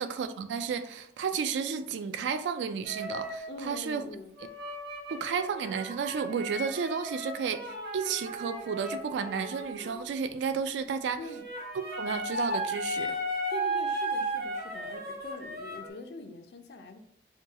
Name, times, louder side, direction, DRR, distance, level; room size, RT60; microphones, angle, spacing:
voice 1, 0.0-4.0 4.4-4.5 5.1-11.2 12.0-13.2, right 6 dB, 90° right, 0.3 m, -32 dB
sound 1, 2.8-3.5 4.4-10.1 11.2-15.9, right 1 dB, 55° right, 0.9 m, -35 dB
voice 2, 3.5-4.4 11.1-11.4 13.5-17.0, left 2 dB, 75° left, 0.4 m, -43 dB
2.8 x 2.3 x 3.5 m
head